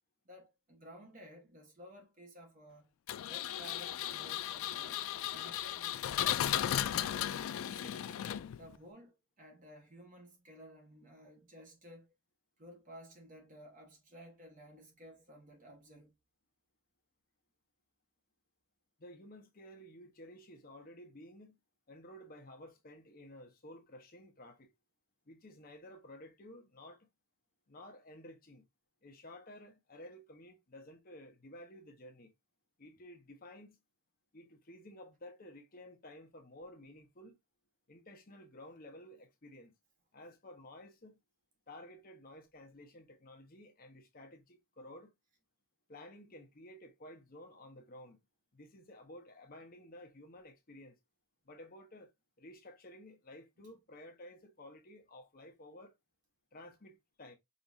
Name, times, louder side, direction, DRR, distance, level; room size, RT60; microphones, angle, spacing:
voice 1, 0.2-2.9 3.2-5.0 5.3-6.5 6.8-8.2 8.6-12.1 12.6-16.1, equal, 35° right, 1.2 m, -55 dB
Engine, 3.1-8.8, left 11 dB, 65° left, 0.3 m, -35 dB
voice 2, 19.0-21.6 21.9-24.7 25.3-27.1 27.7-28.7 29.0-32.3 32.8-33.8 34.3-37.4 37.9-39.7 40.1-41.2 41.7-45.1 45.9-48.2 48.5-51.0 51.4-52.1 52.4-55.9 56.5-57.3, left 1 dB, 40° left, 0.8 m, -53 dB
5.2 x 3.0 x 2.6 m
head